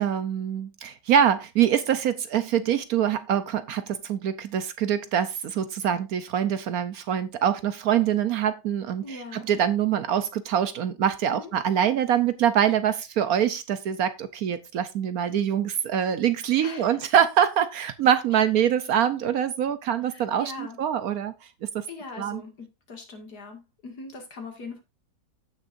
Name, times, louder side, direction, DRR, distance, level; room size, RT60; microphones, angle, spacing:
voice 1, 0.0-21.3 21.6-21.8 22.2-22.4, right 9 dB, 65° right, 1.1 m, -24 dB
voice 2, 9.0-9.5 11.3-11.5 16.6-17.0 18.3-18.4 20.1-20.8 21.9-24.8, left 3 dB, 65° left, 2.7 m, -41 dB
15.5 x 6.4 x 2.6 m
omnidirectional pair, 1.8 m